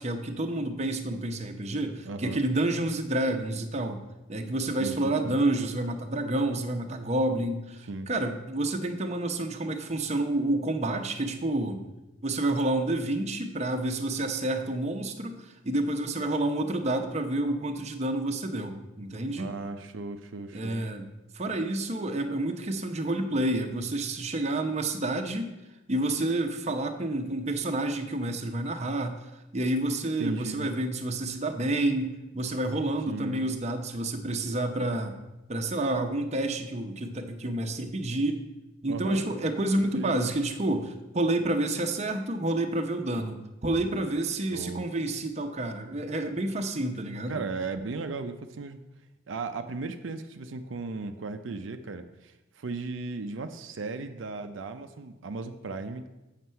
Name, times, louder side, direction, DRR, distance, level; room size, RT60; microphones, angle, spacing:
voice 1, 0.0-4.0 4.3-11.8 12.2-19.5 20.5-21.1 21.3-25.5 25.9-29.2 29.5-35.2 35.5-38.4 38.8-47.4, right 1 dB, 35° right, 5 dB, 0.7 m, -29 dB
voice 2, 2.0-2.4 4.8-4.9 5.2-5.4 7.9-8.1 19.3-20.8 30.2-30.7 33.1-33.5 38.9-39.2 40.0-40.1 44.5-44.8 47.3-48.8 49.3-56.0, right 3 dB, 80° right, 7 dB, 0.5 m, -36 dB
7.8 x 6.6 x 5.5 m, 1.0 s
head